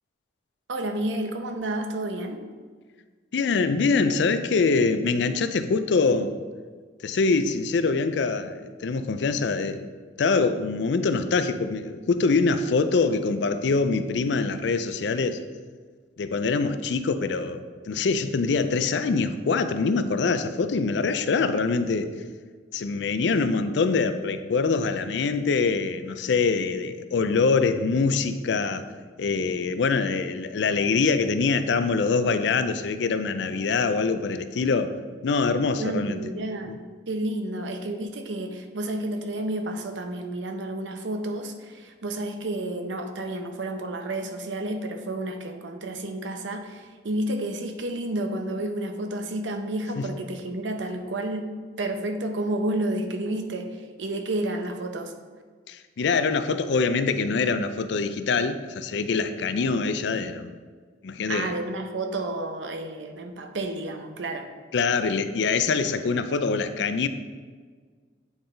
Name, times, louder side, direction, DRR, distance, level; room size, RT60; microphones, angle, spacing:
voice 1, 0.7-2.5 35.8-36.8 37.1-55.1 61.3-64.5, right 1 dB, 80° right, 6 dB, 0.7 m, -31 dB
voice 2, 3.3-6.3 7.0-9.9 10.2-15.4 16.2-22.1 22.7-28.9 29.2-34.9 35.2-36.2 36.7-36.8 50.0-50.1 55.7-60.5 61.0-61.6 64.7-67.1, left 4 dB, 65° left, 10 dB, 0.4 m, -24 dB
8.7 x 3.8 x 3.9 m, 1.5 s
head